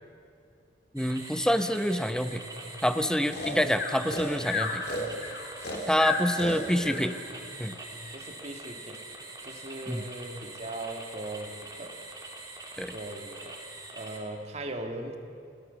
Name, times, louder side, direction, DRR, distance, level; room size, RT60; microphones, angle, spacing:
voice 1, 0.9-2.4 2.8-4.8 5.9-7.1 7.6-7.8 9.9-10.1 12.8-12.9, equal, 5° left, 9 dB, 0.9 m, -27 dB
sound 1, 1.0-14.2, right 2 dB, 20° right, 3.6 m, -44 dB
Breathing, 3.3-7.0, left 3 dB, 60° left, 4.3 m, -32 dB
voice 2, 6.4-7.0 7.3-7.4 8.1-9.0 9.4-12.0 12.9-13.6 13.9-15.2, right 2 dB, 35° right, 4 dB, 2.2 m, -39 dB
29.5 x 18.0 x 7.1 m, 2.5 s
head